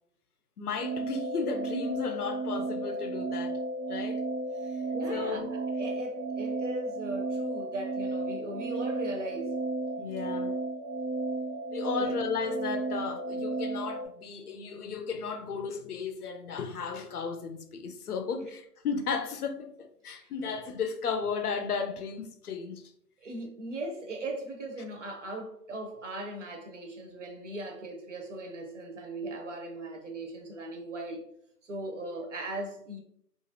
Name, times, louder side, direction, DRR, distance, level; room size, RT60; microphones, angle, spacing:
voice 1, 0.6-3.6 3.9-4.2 5.1-5.5 10.0-10.6 11.7-22.8, left 5 dB, 65° left, 0.6 m, -34 dB
sound 1, 0.8-14.1, right 2 dB, 85° right, 0.9 m, -33 dB
voice 2, 4.9-9.6 12.0-12.2 20.2-20.3 23.2-31.2 31.6-33.0, right 2 dB, 50° right, 0.6 m, -38 dB
2.9 x 2.5 x 2.6 m
hypercardioid pair, 155°, 49 cm